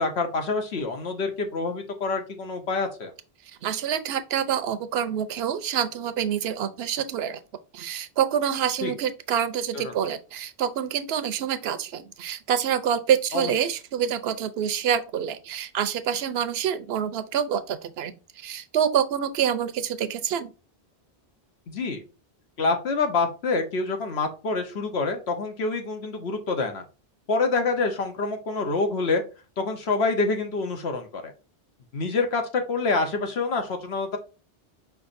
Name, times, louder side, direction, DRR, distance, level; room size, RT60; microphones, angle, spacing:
voice 1, 0.0-3.1 8.8-8.9 9.8-9.9 13.3-13.5 21.7-22.0 22.6-26.8 27.3-29.2 29.6-31.3 31.9-34.2, left 3 dB, 85° left, 1.2 m, -26 dB
voice 2, 3.6-7.4 7.7-20.5, right 8 dB, 75° right, 0.8 m, -27 dB
5.2 x 3.5 x 2.5 m
omnidirectional pair, 1.1 m